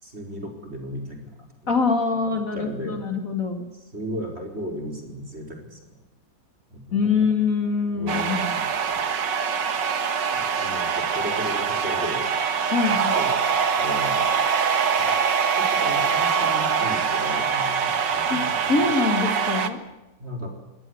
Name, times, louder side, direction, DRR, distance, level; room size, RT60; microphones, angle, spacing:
voice 1, 0.0-1.5 2.3-3.0 3.7-5.8 6.7-7.1 7.9-8.6 10.3-12.3 13.1-13.4 13.8-14.3 14.9-15.1 15.6-18.7 20.2-20.5, equal, 35° right, 3 dB, 5.0 m, -35 dB
voice 2, 1.7-3.6 6.9-8.5 12.7-13.2 18.3-18.4 18.7-19.8, left 4 dB, 45° left, 5 dB, 2.9 m, -24 dB
sound 1, 8.1-19.7, right 6 dB, 70° right, 2.2 m, -24 dB
23.0 x 18.5 x 8.1 m, 0.99 s
omnidirectional pair, 2.0 m